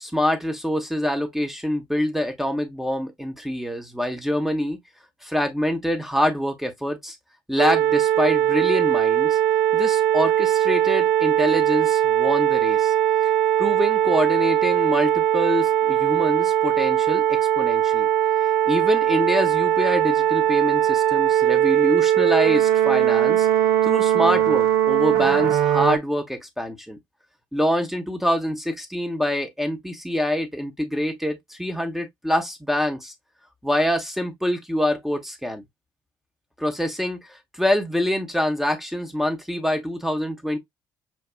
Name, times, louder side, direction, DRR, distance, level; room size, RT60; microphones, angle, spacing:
voice 1, 0.0-4.8 5.2-7.2 7.5-9.4 9.7-12.9 13.6-18.1 18.4-23.5 23.8-27.0 27.5-33.1 33.6-35.6 36.6-40.6, left 1 dB, 5° right, 0.9 m, -25 dB
sound 1, 7.6-26.0, right 11 dB, 70° right, 0.5 m, -20 dB
6.2 x 2.3 x 2.2 m
figure-of-eight pair, 50°, 11 cm